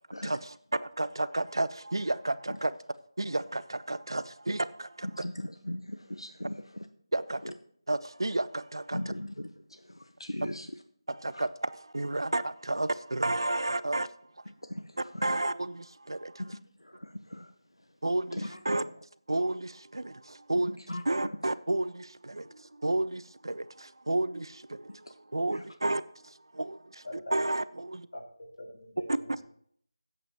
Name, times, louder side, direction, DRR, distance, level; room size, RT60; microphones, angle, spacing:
voice 1, 0.2-2.8 3.2-5.2 7.1-7.5 7.9-9.0 11.1-14.1 15.0-16.4 18.0-18.8 19.3-20.8 21.0-27.1 27.3-28.1 29.1-29.2, right 2 dB, 60° right, 16 dB, 0.5 m, -32 dB
voice 2, 5.0-6.9 7.4-7.5 8.9-10.7 11.3-11.5 14.6-15.2 16.4-17.5 18.3-18.6 20.9-21.0 24.9-25.0 25.5-25.6, left 1 dB, 80° left, 8 dB, 0.8 m, -39 dB
voice 3, 27.0-27.4 28.1-29.4, left 1 dB, 45° left, 1 dB, 2.0 m, -44 dB
15.5 x 8.2 x 2.9 m, 0.64 s
figure-of-eight pair, 165°, 3 cm